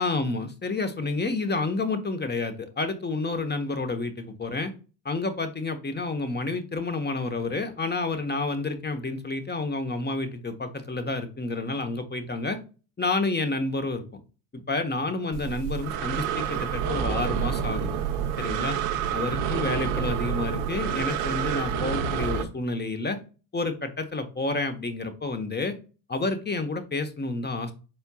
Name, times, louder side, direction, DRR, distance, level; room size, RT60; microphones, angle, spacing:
voice 1, 0.0-4.7 5.0-12.6 13.0-14.0 14.5-17.9 18.4-18.8 19.1-23.2 23.5-25.7 26.1-27.7, left 3 dB, 20° left, 8 dB, 1.0 m, -29 dB
Breathing, 15.3-22.4, right 8 dB, 90° right, 0.9 m, -28 dB
4.5 x 4.4 x 2.2 m, 0.34 s
supercardioid pair, 70°, 48 cm